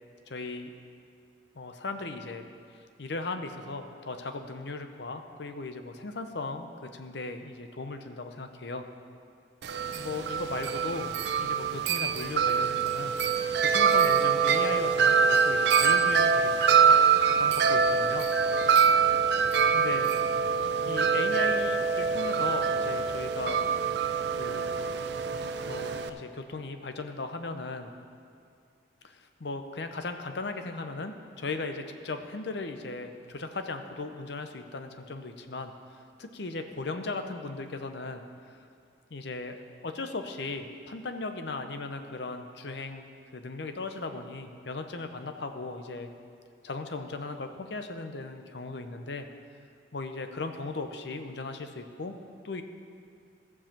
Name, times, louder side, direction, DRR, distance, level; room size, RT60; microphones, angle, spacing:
voice 1, 0.3-0.7 1.6-2.5 3.0-8.9 9.9-13.2 13.6-16.5 16.8-16.9 17.2-18.3 19.5-20.1 20.8-23.7 24.4-24.8 25.7-27.9 29.0-35.7 36.2-38.2 38.5-38.6 39.1-39.6 39.8-43.0 43.3-46.1 46.6-49.3 49.9-52.1 52.4-52.6, left 3 dB, 70° left, 7 dB, 0.7 m, -37 dB
Wind chime, 9.6-26.1, right 6 dB, 65° right, 0.5 m, -25 dB
14.5 x 4.8 x 7.3 m, 2.3 s
head